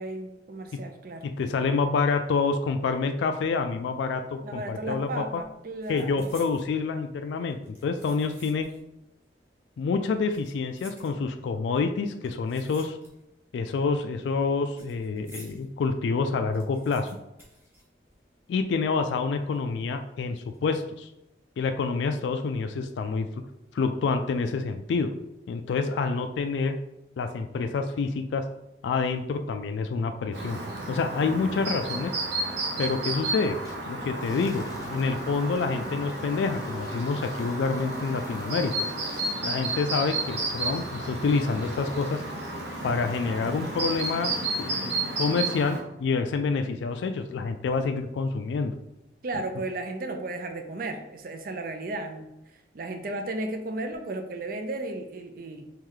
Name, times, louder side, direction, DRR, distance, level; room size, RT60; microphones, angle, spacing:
voice 1, 0.0-1.3 4.4-6.3 49.2-55.7, right 2 dB, 50° right, 6 dB, 0.4 m, -34 dB
voice 2, 1.2-5.2 5.9-8.7 9.8-13.0 13.5-17.1 18.5-21.1 21.6-23.3 23.7-25.1 25.5-26.8 27.2-28.4 28.8-30.6 30.9-32.1 32.8-33.6 33.9-38.9 39.4-42.2 42.8-48.8, left 4 dB, 75° left, 7 dB, 0.3 m, -27 dB
sound 1, 5.0-5.1 5.3-6.7 7.5-8.9 9.2-9.3 10.1-11.5 12.2-13.4 13.7-15.6 16.0-16.1 16.3-18.5 18.7-18.8 19.5-19.9 20.3-20.6, equal, 15° right, 0.9 m, -52 dB
Chirp tweet, 30.3-45.8, right 2 dB, 75° right, 0.8 m, -32 dB
sound 2, 33.6-45.4, equal, 20° left, 0.6 m, -46 dB
3.1 x 3.1 x 3.7 m, 0.90 s
head